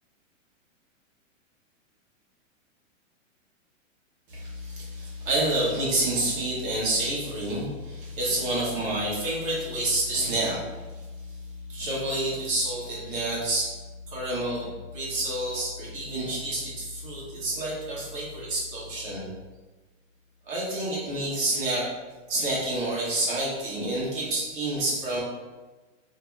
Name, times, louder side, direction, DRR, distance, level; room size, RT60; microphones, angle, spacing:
voice 1, 4.3-11.4 11.7-13.7 14.1-19.3 20.4-21.8 22.3-25.2, right 1 dB, 40° right, -7 dB, 1.5 m, -29 dB
3.8 x 2.9 x 2.4 m, 1.2 s
hypercardioid pair, 165°, 40 cm